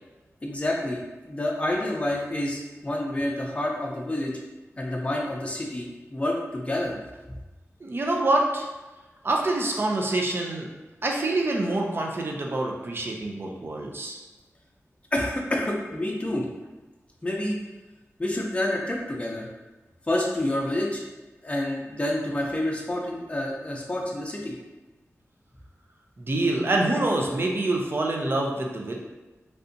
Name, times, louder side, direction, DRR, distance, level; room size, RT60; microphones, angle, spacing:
voice 1, 0.4-4.3 4.8-7.0 7.3-7.4 15.1-16.4 17.2-17.6 18.2-19.5 20.1-21.0 21.4-24.5, left 1 dB, 25° left, -2 dB, 0.6 m, -28 dB
voice 2, 7.8-8.7 9.2-10.7 11.0-14.2 26.2-29.0, right 2 dB, 45° right, 0 dB, 0.5 m, -26 dB
3.3 x 2.7 x 2.6 m, 1.1 s
wide cardioid pair, 75°, 5 cm